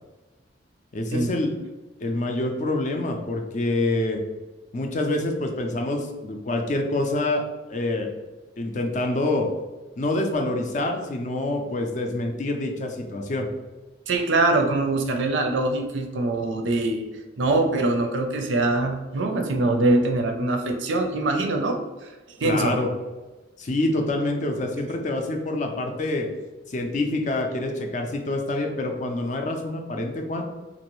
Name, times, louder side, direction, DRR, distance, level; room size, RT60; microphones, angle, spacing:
voice 1, 0.9-1.5 2.0-4.2 4.7-7.4 7.7-8.1 8.6-9.5 10.0-13.5 22.4-22.9 23.6-26.3 26.7-30.4, left 2 dB, 40° left, 3 dB, 0.4 m, -26 dB
voice 2, 14.1-17.0 17.4-22.8, right 2 dB, 75° right, 4 dB, 0.5 m, -23 dB
3.0 x 2.5 x 3.0 m, 1.2 s
head